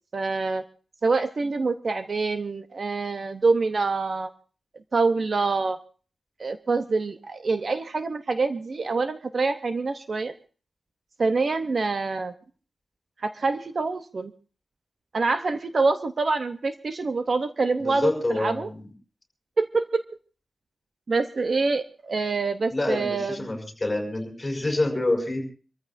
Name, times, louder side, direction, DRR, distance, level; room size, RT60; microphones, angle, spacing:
voice 1, 0.1-0.6 1.0-4.3 4.9-5.8 6.4-10.3 11.2-12.3 13.2-14.3 15.1-18.7 19.6-20.0 21.1-23.4, right 3 dB, 45° right, 9 dB, 0.8 m, -25 dB
voice 2, 17.8-18.9 22.7-25.5, left 2 dB, 15° left, 1 dB, 5.6 m, -27 dB
26.0 x 14.0 x 2.7 m, 0.37 s
wide cardioid pair, 135°, 0 cm